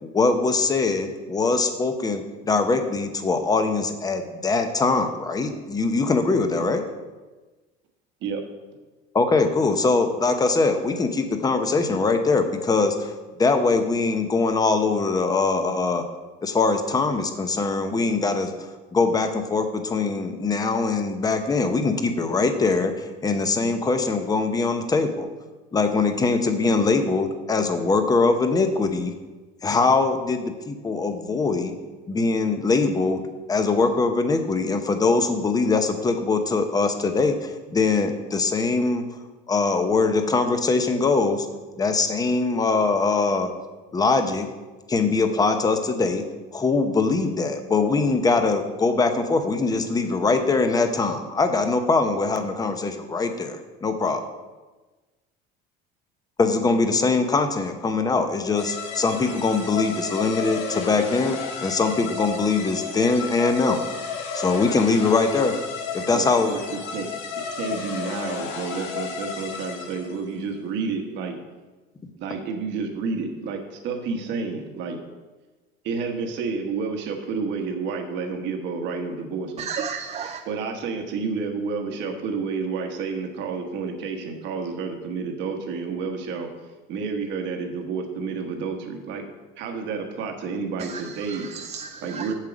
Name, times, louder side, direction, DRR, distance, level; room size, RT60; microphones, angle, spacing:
voice 1, 0.0-6.8 9.1-13.1 13.4-16.0 16.4-18.5 18.9-25.3 25.7-29.1 29.6-31.7 32.1-33.2 33.5-39.0 39.5-41.5 41.8-43.5 43.9-44.5 44.9-46.2 46.5-54.2 56.4-63.8 64.3-65.6 65.9-66.5, left 3 dB, 15° left, 7 dB, 0.8 m, -22 dB
sound 1, 58.6-70.2, left 5 dB, 65° left, 1.4 m, -32 dB
voice 2, 66.1-67.1 67.3-71.4 72.2-75.0 75.8-79.7 80.4-86.5 86.9-89.2 89.6-91.5 92.0-92.3, right 5 dB, 60° right, 4 dB, 1.2 m, -30 dB
voice 3, 79.6-80.4 90.8-92.3, right 6 dB, 30° right, 5 dB, 0.4 m, -34 dB
7.5 x 7.3 x 5.0 m, 1.2 s
cardioid pair, 145°, 21 cm